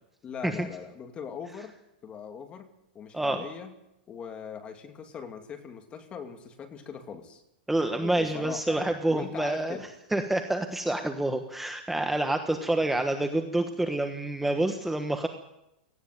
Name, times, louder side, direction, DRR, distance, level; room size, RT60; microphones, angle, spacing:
voice 1, 0.2-1.7 2.0-2.7 2.9-3.7 4.1-7.4 7.9-9.9, left 7 dB, 20° left, 6 dB, 2.5 m, -40 dB
voice 2, 7.7-9.8 10.1-15.3, right 1 dB, 5° right, 5 dB, 1.3 m, -27 dB
18.5 x 15.5 x 9.4 m, 0.87 s
supercardioid pair, 150°, 5 cm